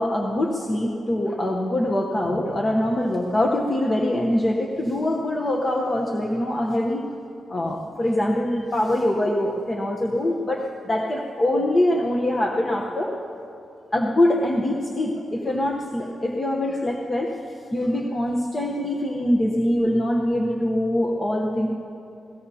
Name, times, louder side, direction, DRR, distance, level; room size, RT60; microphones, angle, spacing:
voice 1, 0.0-7.0 7.5-13.2 13.9-21.7, left 1 dB, 25° left, -1 dB, 0.8 m, -23 dB
27.5 x 18.0 x 2.8 m, 2.7 s
wide cardioid pair, 180°, 0 cm